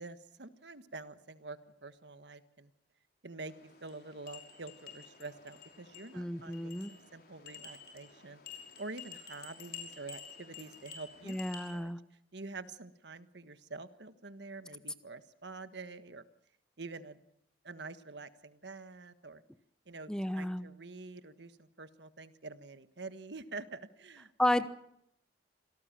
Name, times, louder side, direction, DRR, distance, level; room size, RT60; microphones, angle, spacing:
voice 1, 0.0-2.7 3.2-8.4 8.8-11.9 12.3-16.2 16.8-17.2 17.6-19.4 19.9-24.3, right 3 dB, 70° right, 11 dB, 1.4 m, -47 dB
sound 1, 3.4-11.7, left 6 dB, 55° left, 5.8 m, -51 dB
voice 2, 6.1-6.9 11.3-12.0 20.1-20.7 24.4-24.7, left 1 dB, 5° left, 12 dB, 0.9 m, -32 dB
26.5 x 18.0 x 7.5 m, 0.74 s
head